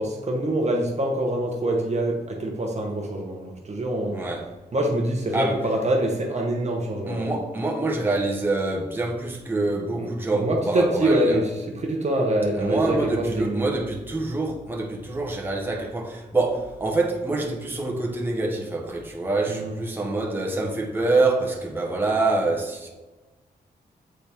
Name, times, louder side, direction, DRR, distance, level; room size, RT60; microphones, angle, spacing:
voice 1, 0.0-4.2 4.7-7.3 10.0-13.7 19.5-19.8, right 1 dB, 40° right, 1.0 m, -25 dB
voice 2, 4.1-4.5 5.3-5.6 7.1-11.4 12.5-22.9, right 2 dB, 10° right, 1.1 m, -26 dB
7.7 x 4.2 x 3.5 m
cardioid pair, 90°, 17 cm